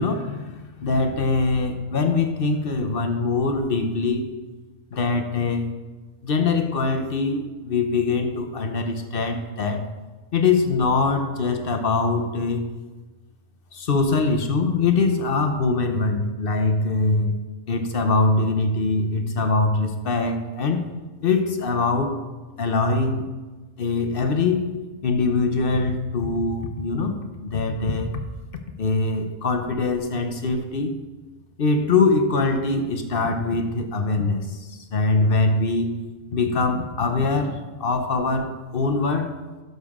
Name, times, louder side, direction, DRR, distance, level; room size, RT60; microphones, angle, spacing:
voice 1, 0.0-4.4 4.9-5.7 6.2-9.9 10.3-12.7 13.7-17.4 17.7-20.9 21.2-22.2 22.6-23.3 23.8-24.7 25.0-28.2 28.8-30.9 31.6-36.0 36.3-39.3, left 3 dB, 50° left, 6 dB, 0.9 m, -23 dB
12.0 x 6.6 x 3.7 m, 1.2 s
omnidirectional pair, 1.3 m